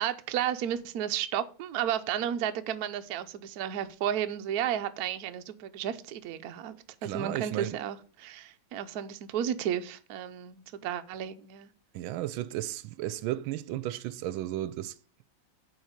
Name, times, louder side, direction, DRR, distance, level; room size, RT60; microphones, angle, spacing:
voice 1, 0.0-6.7 7.0-11.7, right 10 dB, 65° right, 0.9 m, -33 dB
voice 2, 7.0-7.8 11.9-14.9, right 14 dB, 85° right, 1.4 m, -34 dB
7.9 x 4.4 x 6.4 m
omnidirectional pair, 2.2 m